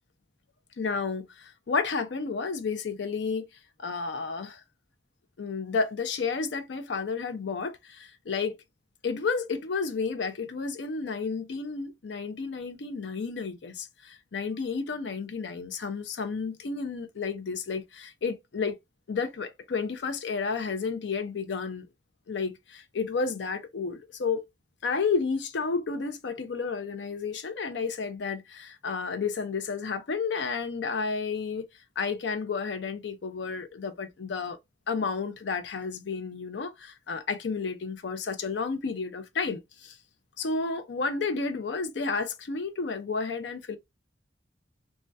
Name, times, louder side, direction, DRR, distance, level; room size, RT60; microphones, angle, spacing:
voice 1, 0.8-3.5 3.8-4.6 5.4-8.5 9.0-18.8 19.1-21.9 22.3-24.4 24.8-31.7 32.0-34.6 34.9-40.0 40.4-43.8, left 4 dB, 75° left, 0.5 m, -31 dB
3.3 x 2.2 x 2.6 m
head